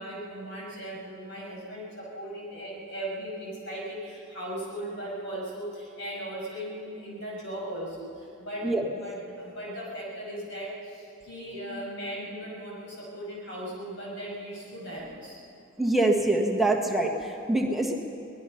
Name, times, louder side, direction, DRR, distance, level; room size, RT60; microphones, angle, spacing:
voice 1, 0.0-15.4, right 1 dB, 55° left, -4 dB, 7.0 m, -38 dB
voice 2, 15.8-17.9, right 2 dB, ahead, 1 dB, 1.4 m, -24 dB
24.5 x 19.5 x 5.8 m, 2.8 s
head